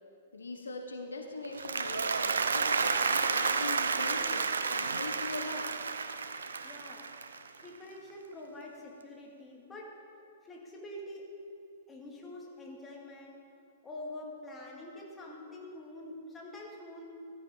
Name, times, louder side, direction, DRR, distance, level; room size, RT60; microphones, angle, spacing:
voice 1, 0.3-5.7, left 3 dB, 75° left, 4 dB, 1.1 m, -41 dB
Applause, 1.4-7.8, right 5 dB, 75° right, 0.7 m, -31 dB
voice 2, 6.6-7.1 7.6-9.9 10.4-11.3 11.9-13.4 13.8-17.0, left 1 dB, 15° left, -1 dB, 2.6 m, -46 dB
14.0 x 13.5 x 4.0 m, 2.5 s
figure-of-eight pair, 105°, 0 cm